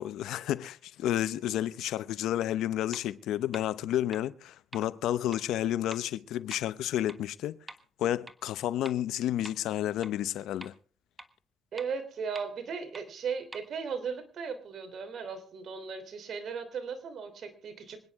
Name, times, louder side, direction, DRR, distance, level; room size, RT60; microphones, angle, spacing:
voice 1, 0.0-7.6 8.0-10.7, left 12 dB, 85° left, 0.7 m, -31 dB
sound 1, 2.3-2.4 2.9-3.0 3.5-3.6 4.1-4.2 4.7-4.8 5.3-5.4 5.9-6.0 6.5-6.6 7.1-7.2 7.7-7.8 8.3-8.4 8.9-9.0 9.4-9.5 10.0-10.1 10.6-10.7 11.2-11.3 11.8-11.9 12.4-12.5 12.9-13.0 13.5-13.6, right 2 dB, 20° right, 1.4 m, -44 dB
voice 2, 11.7-18.0, right 6 dB, 60° right, 3.3 m, -37 dB
26.0 x 9.8 x 3.6 m
cardioid pair, 90°, 0 cm